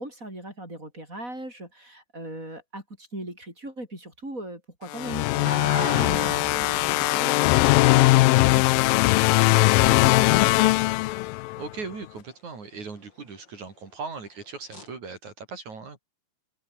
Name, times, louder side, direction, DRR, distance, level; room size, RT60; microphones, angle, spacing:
voice 1, 0.0-11.0, right 1 dB, 20° right, 8.0 m, -39 dB
sound 1, 4.9-11.6, left 20 dB, 80° left, 2.4 m, -20 dB
sound 2, 5.4-11.3 14.7-14.9, left 2 dB, 30° left, 8.6 m, -37 dB
voice 2, 11.6-16.0, right 4 dB, 55° right, 5.3 m, -38 dB
open air
omnidirectional pair, 4.1 m